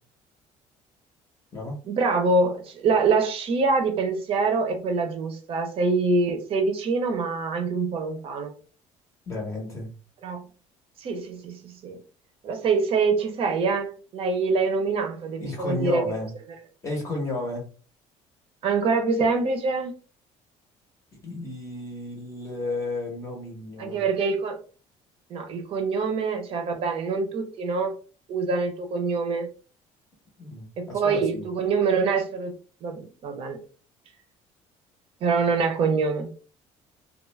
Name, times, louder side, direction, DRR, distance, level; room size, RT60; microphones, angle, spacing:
voice 1, 1.9-8.5 10.2-10.5 11.0-12.0 12.4-16.0 18.6-19.9 23.8-24.6 25.3-27.9 28.3-29.5 30.8-32.5 32.8-33.6 35.2-36.3, right 4 dB, 45° right, 5 dB, 0.7 m, -25 dB
voice 2, 9.3-9.9 15.4-16.3 16.8-17.7 21.2-24.0 30.4-31.4, left 2 dB, 20° left, 0 dB, 0.7 m, -32 dB
2.3 x 2.0 x 3.2 m, 0.37 s
cardioid pair, 155°, 13 cm